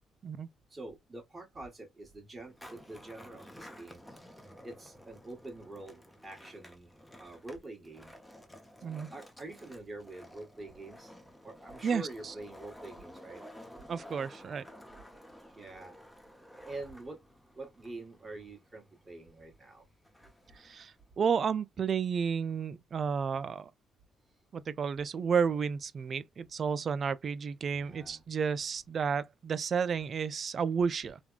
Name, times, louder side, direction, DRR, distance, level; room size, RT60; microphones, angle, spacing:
voice 1, 0.7-4.0 4.6-8.1 8.8-11.1 11.4-13.4 15.6-15.9 16.6-17.2 17.5-19.9 27.7-28.2, right 2 dB, 25° right, 1.5 m, -46 dB
Skateboard, 2.4-21.1, equal, 5° left, 0.8 m, -53 dB
voice 2, 11.8-12.3 13.9-14.7 20.6-23.7 24.5-31.2, right 6 dB, 50° right, 0.3 m, -32 dB
3.3 x 2.2 x 2.4 m
cardioid pair, 90°, 0 cm